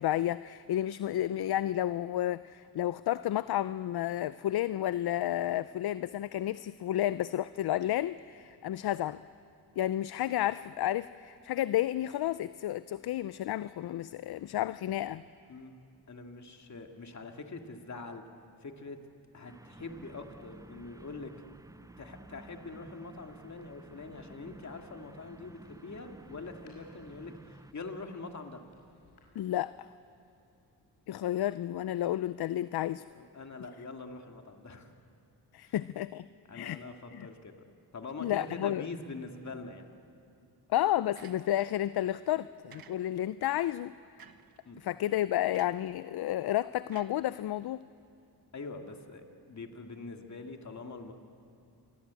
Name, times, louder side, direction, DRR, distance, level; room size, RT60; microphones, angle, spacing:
voice 1, 0.0-9.2 9.8-15.2 29.4-29.7 31.1-33.0 35.5-36.2 36.5-36.8 37.1-37.3 38.2-38.8 40.7-43.9 44.8-47.8, left 13 dB, 70° left, 16 dB, 0.5 m, -31 dB
voice 2, 16.1-18.2 18.6-19.0 19.3-21.3 22.0-28.6 33.1-34.9 35.6-35.7 36.5-37.7 37.9-39.9 42.2-42.4 44.7-44.8 48.5-51.1, left 3 dB, 45° left, 4 dB, 2.4 m, -44 dB
sound 1, 19.5-27.7, right 2 dB, 10° right, 0.5 m, -53 dB
Thunder, 23.1-31.5, left 2 dB, 85° left, 6.1 m, -66 dB
sound 2, 41.1-41.8 42.7-43.4 44.2-44.6 45.5-45.9 46.9-47.8, right 7 dB, 60° right, 1.3 m, -54 dB
28.5 x 22.5 x 8.4 m, 2.5 s
cardioid pair, 100°, 40 cm